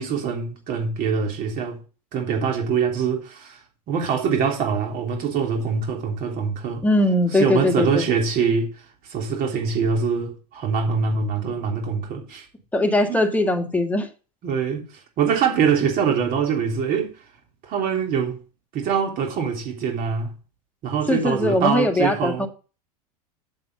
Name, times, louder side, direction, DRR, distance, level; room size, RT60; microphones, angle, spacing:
voice 1, 0.0-1.8 2.1-3.6 3.9-6.8 7.3-8.8 9.1-12.5 13.1-13.2 14.4-14.9 15.2-17.1 17.6-18.4 18.7-20.3 20.8-22.5, right 6 dB, 45° right, 3.4 m, -24 dB
voice 2, 6.8-8.1 12.7-14.1 21.1-22.5, left 1 dB, 10° left, 1.7 m, -20 dB
7.6 x 7.4 x 5.4 m
hypercardioid pair, 100°, 20 cm